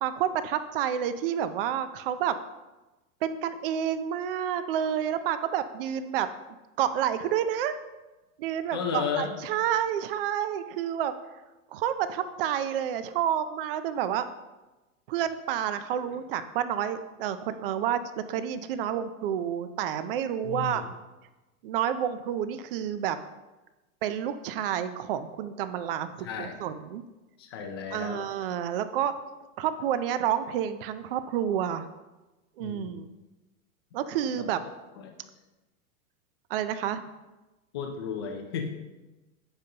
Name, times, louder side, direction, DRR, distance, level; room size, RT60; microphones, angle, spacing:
voice 1, 0.0-2.4 3.2-6.3 6.8-7.8 8.4-11.1 11.7-14.2 15.1-18.0 18.3-20.8 21.6-23.2 24.0-27.0 27.9-29.1 29.6-31.9 32.6-33.1 33.9-34.6 36.5-37.0, right 9 dB, 45° right, 12 dB, 0.4 m, -29 dB
voice 2, 8.7-9.3 20.4-20.9 26.2-26.5 27.4-28.3 32.6-33.1 34.2-34.5 35.0-35.1 37.7-38.7, left 6 dB, 20° left, 2 dB, 0.3 m, -33 dB
14.5 x 5.2 x 2.8 m, 1.1 s
supercardioid pair, 160°, 42 cm